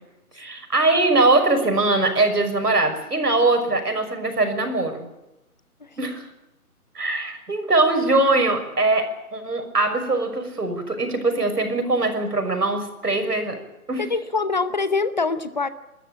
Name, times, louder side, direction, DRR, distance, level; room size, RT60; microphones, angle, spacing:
voice 1, 0.3-5.1 6.0-6.3 6.9-13.6 13.9-14.1, right 2 dB, 85° right, 7 dB, 6.1 m, -21 dB
voice 2, 14.0-15.7, left 4 dB, 30° left, 13 dB, 0.9 m, -24 dB
28.0 x 13.5 x 8.6 m, 0.94 s
figure-of-eight pair, 160°, 46 cm